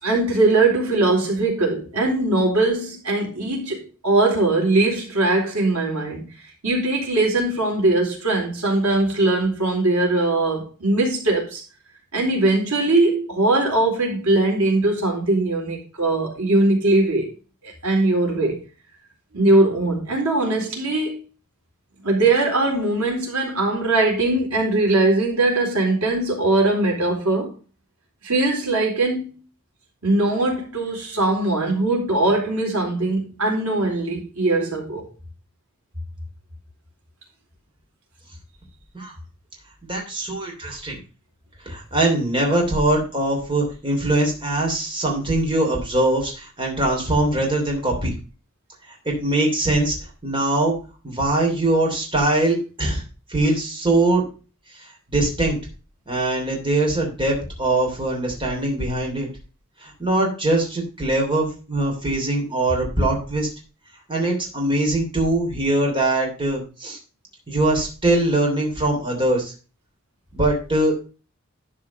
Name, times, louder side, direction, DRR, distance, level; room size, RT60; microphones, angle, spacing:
voice 1, 0.0-6.2 6.6-11.6 12.1-17.3 17.6-18.5 19.3-21.2 22.0-27.5 28.2-29.4 30.0-35.0, right 2 dB, 90° right, 4.1 m, -20 dB
voice 2, 39.8-41.0 41.6-48.1 48.9-50.7 51.0-53.0 53.3-54.3 54.8-55.6 56.1-59.3 59.8-63.5 64.1-67.0 67.5-69.5 70.3-70.9, right 2 dB, 25° right, 3.0 m, -22 dB
11.5 x 4.9 x 5.2 m
head